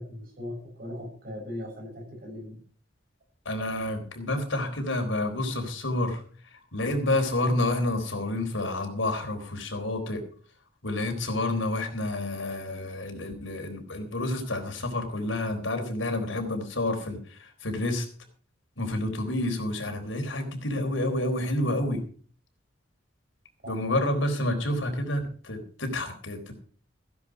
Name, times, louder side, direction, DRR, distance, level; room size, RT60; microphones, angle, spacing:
voice 1, 0.0-2.6 23.6-23.8, left 1 dB, 50° right, 0 dB, 7.7 m, -39 dB
voice 2, 3.5-10.2 10.8-18.1 18.8-22.0 23.7-26.5, left 1 dB, 80° left, 4 dB, 4.0 m, -29 dB
16.0 x 10.5 x 4.7 m, 0.43 s
head